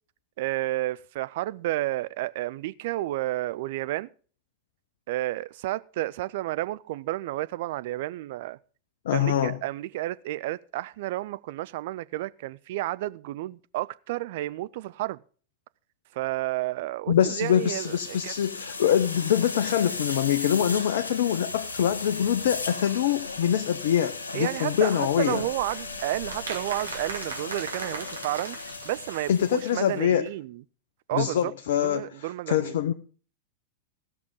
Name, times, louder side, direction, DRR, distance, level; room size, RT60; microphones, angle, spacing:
voice 1, 0.4-4.1 5.1-8.6 9.1-15.2 16.1-18.3 24.3-28.6 28.8-30.6 31.1-31.5 31.8-32.8, right 16 dB, 50° right, 0.4 m, -31 dB
voice 2, 9.1-9.6 17.1-25.4 29.3-30.2 31.1-32.9, left 10 dB, 60° left, 0.5 m, -24 dB
sound 1, 17.2-30.0, left 3 dB, 75° left, 1.6 m, -37 dB
sound 2, 25.7-29.7 30.0-30.1 30.3-30.4, right 5 dB, 70° right, 2.1 m, -39 dB
16.0 x 6.3 x 5.4 m
figure-of-eight pair, 90°, 0 cm